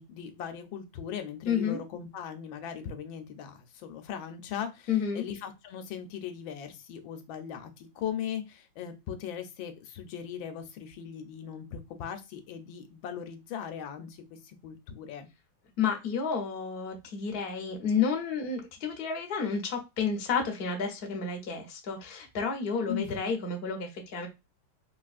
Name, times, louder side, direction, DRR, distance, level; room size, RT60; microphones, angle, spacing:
voice 1, 0.0-15.3 22.9-23.1, left 8 dB, 90° left, 8 dB, 1.4 m, -39 dB
voice 2, 1.4-1.8 4.9-5.2 15.8-24.3, left 6 dB, 65° left, 2 dB, 0.6 m, -31 dB
3.7 x 2.4 x 2.4 m, 0.25 s
omnidirectional pair, 2.1 m